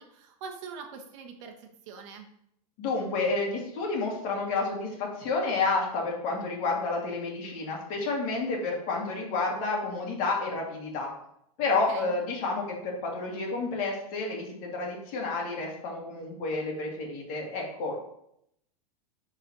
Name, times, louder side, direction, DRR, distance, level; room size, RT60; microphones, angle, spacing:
voice 1, 0.0-2.3 11.9-12.2, right 5 dB, 50° right, 4 dB, 1.0 m, -43 dB
voice 2, 2.8-11.1 11.6-18.0, left 3 dB, 40° left, -1 dB, 2.1 m, -30 dB
10.0 x 4.0 x 3.0 m, 0.74 s
supercardioid pair, 150°, 19 cm